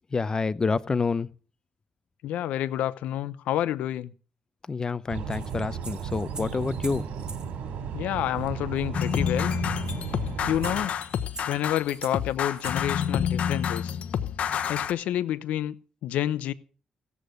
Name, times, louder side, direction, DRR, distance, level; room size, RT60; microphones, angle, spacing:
voice 1, 0.1-1.3 4.7-7.4, left 4 dB, 30° left, 0.7 m, -28 dB
voice 2, 2.2-4.1 7.9-9.6 10.5-10.9 11.5-14.0 14.7-15.7 16.0-16.5, left 12 dB, 90° left, 0.8 m, -29 dB
sound 1, 5.1-10.8, right 7 dB, 85° right, 3.0 m, -35 dB
sound 2, 5.3-7.5 8.4-8.5 8.8-8.9 9.1-12.8, right 4 dB, 35° right, 1.6 m, -44 dB
sound 3, 8.9-14.9, left 8 dB, 65° left, 1.1 m, -29 dB
16.5 x 8.4 x 6.4 m
cardioid pair, 90°, 2 cm